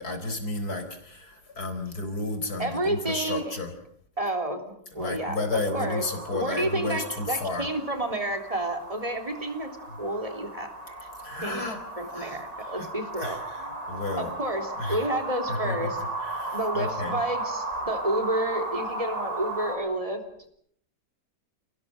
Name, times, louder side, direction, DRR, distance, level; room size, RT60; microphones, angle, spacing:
voice 1, 0.0-3.7 5.0-7.7 9.9-10.0 11.2-11.8 12.1-12.9 13.2-14.3 14.8-15.1 15.5-17.2, left 2 dB, 70° left, 7 dB, 4.8 m, -32 dB
voice 2, 2.6-3.5 4.2-4.6 4.9-5.4 5.7-6.0 6.3-9.7 10.0-11.1 11.4-11.6 12.0-13.4 14.2-16.0 16.5-20.2, right 1 dB, 20° right, 5 dB, 3.5 m, -30 dB
sound 1, 5.7-19.8, right 2 dB, 70° right, 8.0 m, -36 dB
29.5 x 18.0 x 7.8 m, 0.68 s
omnidirectional pair, 1.7 m